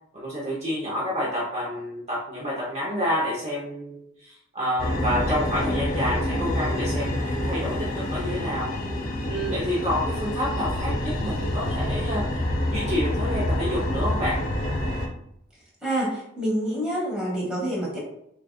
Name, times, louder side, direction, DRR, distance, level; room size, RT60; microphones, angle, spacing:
voice 1, 0.1-8.8 9.3-12.3 12.7-14.4, equal, 30° right, -5 dB, 0.8 m, -29 dB
sound 1, 4.8-15.1, left 1 dB, 45° left, 0.8 m, -27 dB
voice 2, 15.8-18.0, right 1 dB, 5° right, -5 dB, 1.3 m, -27 dB
6.3 x 2.4 x 2.3 m, 0.78 s
head